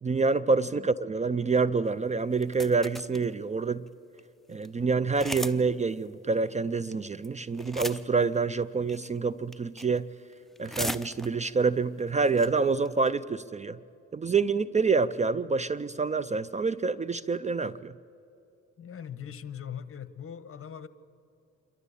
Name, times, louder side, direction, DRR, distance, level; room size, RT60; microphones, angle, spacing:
voice 1, 0.0-3.9 4.5-10.1 10.6-13.8 14.1-17.9, right 4 dB, 25° right, 0.5 m, -27 dB
sound 1, 2.3-3.2 3.9-4.0 4.2-4.3 4.5-4.7 5.1-5.6 5.8-5.9 6.9-7.3 7.5-8.2 8.9-9.2 9.5-10.0 10.3-11.5 12.0-12.1 12.2-12.5 12.8-13.1, left 1 dB, ahead, 0.8 m, -37 dB
voice 2, 18.8-20.9, left 8 dB, 45° left, 1.1 m, -40 dB
27.5 x 12.5 x 8.3 m
cardioid pair, 90°, 30 cm